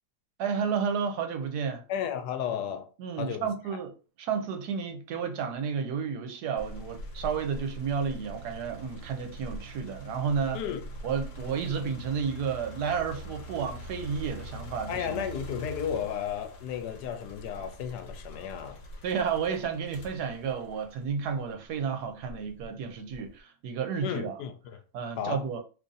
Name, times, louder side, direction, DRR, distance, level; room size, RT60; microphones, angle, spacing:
voice 1, 0.4-1.8 3.0-10.6 11.0-15.2 19.0-24.4 24.9-25.6, right 6 dB, 75° right, 1.2 m, -31 dB
voice 2, 1.9-2.9 3.2-3.5 10.5-10.8 14.9-18.8 24.0-24.8 25.2-25.5, left 8 dB, 90° left, 1.2 m, -33 dB
sound 1, 6.6-21.6 22.2-23.4, right 1 dB, 60° left, 1.1 m, -43 dB
3.0 x 2.6 x 3.8 m
omnidirectional pair, 1.7 m